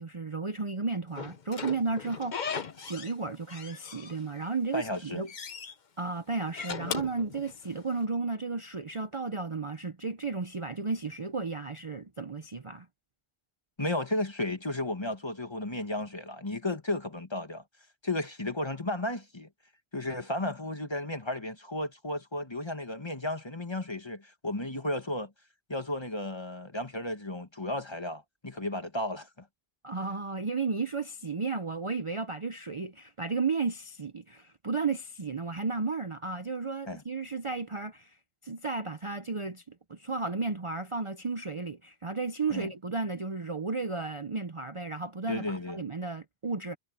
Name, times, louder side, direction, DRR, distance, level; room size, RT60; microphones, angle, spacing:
voice 1, 0.0-2.5 2.8-5.3 6.0-12.9 29.8-38.2 38.4-46.8, right 4 dB, 35° right, 0.7 m, -33 dB
Slam / Squeak, 1.2-3.2 3.5-4.5 4.8-5.7 6.4-7.9, left 6 dB, 50° left, 1.0 m, -38 dB
voice 2, 4.7-5.2 13.8-17.6 18.0-19.5 19.9-25.3 25.7-29.5 36.9-37.0 42.5-42.7 45.3-45.8, left 1 dB, 25° left, 1.7 m, -34 dB
omnidirectional pair, 1.1 m